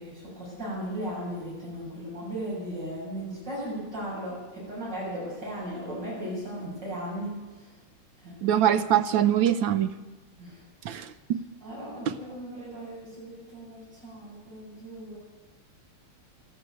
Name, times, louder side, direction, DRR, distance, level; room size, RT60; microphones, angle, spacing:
voice 1, 0.0-7.3 7.6-7.7 8.2-8.6 10.4-10.6 11.6-15.2, equal, 55° right, -7 dB, 7.7 m, -36 dB
voice 2, 8.4-9.9 10.8-11.4 12.1-12.2, right 10 dB, 75° right, 11 dB, 1.4 m, -23 dB
13.0 x 11.5 x 9.0 m, 1.3 s
omnidirectional pair, 2.3 m